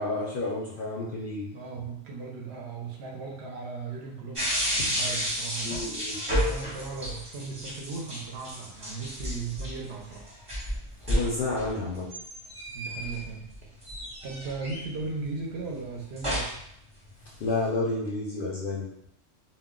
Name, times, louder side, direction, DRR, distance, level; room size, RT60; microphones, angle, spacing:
voice 1, 0.0-1.5 4.8-4.9 5.6-6.2 11.0-12.1 17.4-18.9, left 2 dB, 60° left, -4 dB, 0.6 m, -30 dB
voice 2, 1.5-5.8 6.3-10.3 12.7-13.7 14.2-16.6, right 4 dB, 65° right, -1 dB, 0.7 m, -37 dB
sound 1, 4.4-13.6 13.8-15.1 15.8-16.7 17.1-17.6, equal, 30° right, 0.8 m, -31 dB
2.2 x 2.1 x 3.6 m, 0.74 s
omnidirectional pair, 1.3 m